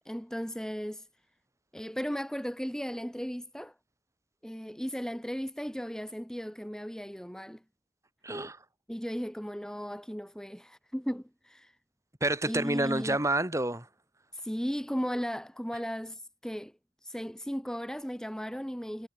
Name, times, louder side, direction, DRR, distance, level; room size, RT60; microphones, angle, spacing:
voice 1, 0.0-1.1 1.7-3.7 4.4-7.6 8.9-11.8 12.4-13.2 14.3-16.7 17.0-19.1, equal, 5° left, 1.7 m, -36 dB
voice 2, 8.2-8.6 12.2-13.9, right 1 dB, 20° right, 5.7 m, -28 dB
head